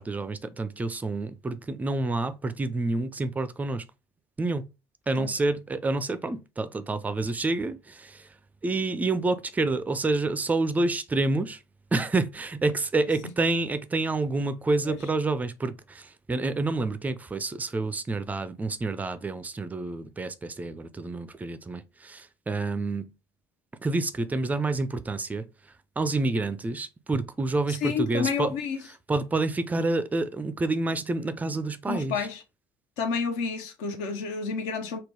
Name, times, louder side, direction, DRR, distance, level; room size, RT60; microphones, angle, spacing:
voice 1, 0.0-3.8 4.4-4.7 5.1-8.3 8.6-11.6 11.9-23.1 23.8-25.5 26.0-28.6 29.1-32.3, right 3 dB, 15° right, 0.4 m, -28 dB
voice 2, 27.7-28.8 31.9-32.4 33.0-35.0, left 5 dB, 60° left, 0.8 m, -30 dB
3.6 x 2.2 x 3.2 m
figure-of-eight pair, 60°, 11 cm